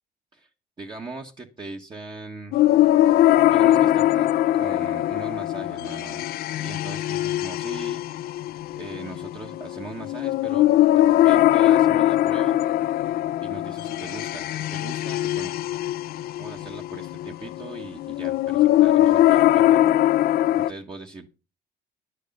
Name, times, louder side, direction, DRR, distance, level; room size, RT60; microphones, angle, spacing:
voice 1, 0.8-2.6 3.5-4.3 4.5-6.2 6.6-8.0 8.8-10.7 11.0-12.6 13.0-13.1 13.4-15.5 16.4-19.8 20.7-21.3, right 3 dB, 30° right, 0 dB, 1.3 m, -39 dB
sound 1, 2.5-20.7, left 14 dB, 65° left, 0.4 m, -21 dB
10.5 x 8.3 x 5.3 m, 0.31 s
cardioid pair, 110°, 17 cm